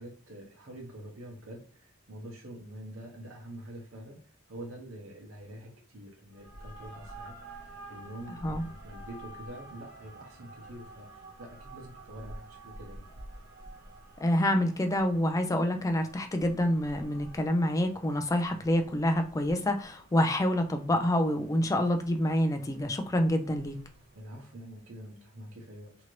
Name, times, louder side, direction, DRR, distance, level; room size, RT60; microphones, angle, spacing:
voice 1, 0.0-4.2 4.5-7.6 7.8-13.1 24.1-25.9, right 1 dB, 90° right, 0 dB, 0.9 m, -46 dB
sound 1, 6.3-24.2, right 1 dB, 55° right, 0.8 m, -50 dB
voice 2, 14.2-23.8, left 1 dB, 15° left, 5 dB, 0.3 m, -27 dB
2.8 x 2.5 x 3.1 m, 0.43 s
head